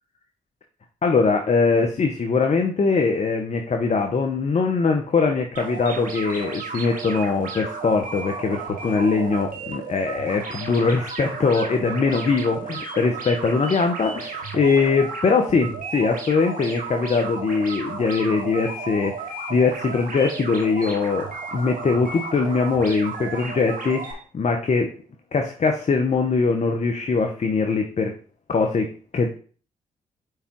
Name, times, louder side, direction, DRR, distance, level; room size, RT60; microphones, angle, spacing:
voice 1, 1.0-24.9 25.3-28.2 28.5-29.4, left 4 dB, 50° left, 4 dB, 0.9 m, -22 dB
sound 1, 5.5-24.1, right 4 dB, 65° right, 1.9 m, -34 dB
5.0 x 4.8 x 4.5 m, 0.42 s
hypercardioid pair, 40°, 15 cm